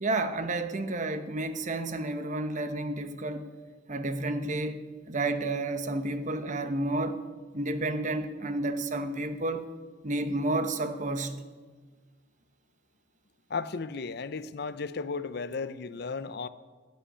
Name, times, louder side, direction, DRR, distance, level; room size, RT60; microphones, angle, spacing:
voice 1, 0.0-3.5 3.9-7.2 7.5-9.6 10.0-11.4, right 2 dB, 40° right, 1.0 m, -31 dB
voice 2, 13.5-16.5, left 4 dB, 60° left, 0.6 m, -34 dB
13.5 x 7.8 x 10.0 m
head